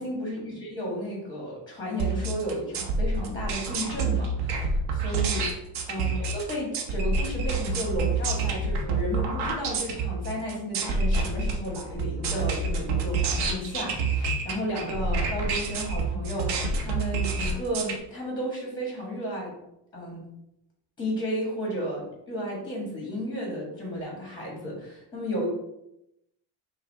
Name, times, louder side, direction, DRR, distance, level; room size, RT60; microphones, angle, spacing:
voice 1, 0.0-5.4 5.9-19.5 19.9-20.3 21.0-25.5, equal, 10° left, -2 dB, 1.4 m, -33 dB
sound 1, 2.0-17.9, right 3 dB, 60° right, 0.9 m, -27 dB
5.9 x 2.5 x 3.5 m, 0.83 s
cardioid pair, 165°, 43 cm